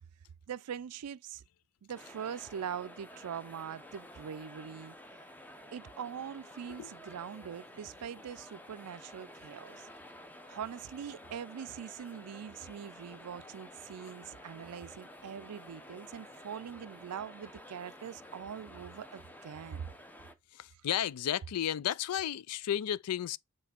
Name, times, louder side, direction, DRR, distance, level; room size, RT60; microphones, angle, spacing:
voice 1, 0.5-1.4 1.8-5.0 5.7-9.9 10.5-19.9, right 8 dB, 90° right, 0.4 m, -42 dB
sound 1, 1.9-20.3, left 1 dB, 10° left, 0.6 m, -51 dB
voice 2, 20.5-23.4, left 10 dB, 80° left, 0.4 m, -33 dB
7.1 x 3.3 x 4.3 m
head